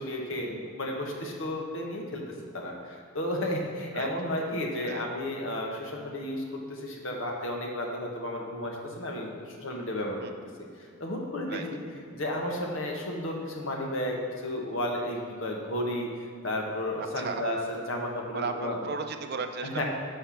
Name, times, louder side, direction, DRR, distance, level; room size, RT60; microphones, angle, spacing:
voice 1, 0.0-2.2 2.5-6.4 6.7-10.2 11.0-11.8 12.1-16.1 16.4-18.8 19.6-19.8, left 1 dB, 70° left, 0 dB, 1.2 m, -33 dB
voice 2, 17.0-17.4 18.3-19.8, right 4 dB, 50° right, 7 dB, 0.5 m, -35 dB
6.7 x 5.6 x 5.7 m, 2.2 s
head